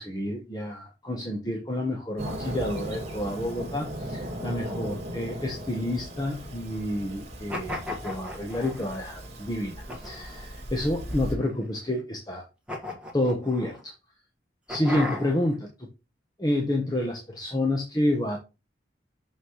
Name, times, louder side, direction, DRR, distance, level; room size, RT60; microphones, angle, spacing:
voice 1, 0.0-12.4 13.1-13.9 14.7-15.9 16.4-18.4, left 1 dB, 20° left, 1 dB, 1.0 m, -29 dB
Fireworks, 2.2-11.3, right 1 dB, 35° right, 2.2 m, -37 dB
sound 1, 7.5-9.0 9.9-10.5 11.1-11.8 12.7-13.8 14.7-15.5, left 1 dB, 5° right, 1.5 m, -36 dB
6.5 x 5.9 x 3.1 m, 0.27 s
head